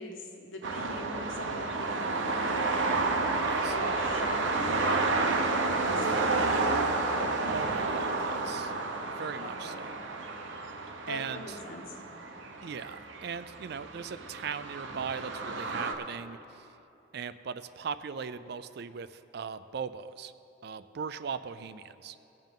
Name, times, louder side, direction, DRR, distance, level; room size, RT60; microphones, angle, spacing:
voice 1, 0.0-2.7 3.4-4.9 5.8-6.9 9.4-9.9 11.1-12.0, left 1 dB, 90° left, 2 dB, 1.4 m, -42 dB
sound 1, 0.6-15.9, right 3 dB, 75° right, 0.9 m, -31 dB
voice 2, 3.5-3.8 5.8-6.7 7.5-8.7 9.0-10.0 10.5-11.6 12.6-16.7 17.1-20.3 20.6-22.2, right 6 dB, 55° right, 13 dB, 0.4 m, -39 dB
18.5 x 7.3 x 3.8 m, 2.9 s
head